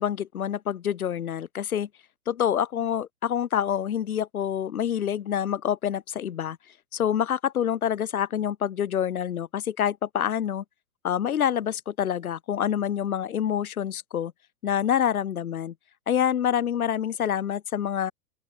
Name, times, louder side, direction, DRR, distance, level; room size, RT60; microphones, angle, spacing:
voice 1, 0.0-1.9 2.3-6.6 6.9-10.6 11.0-14.3 14.6-15.7 16.1-18.1, left 9 dB, 65° left, 3.5 m, -27 dB
open air
hypercardioid pair, 125°, 46 cm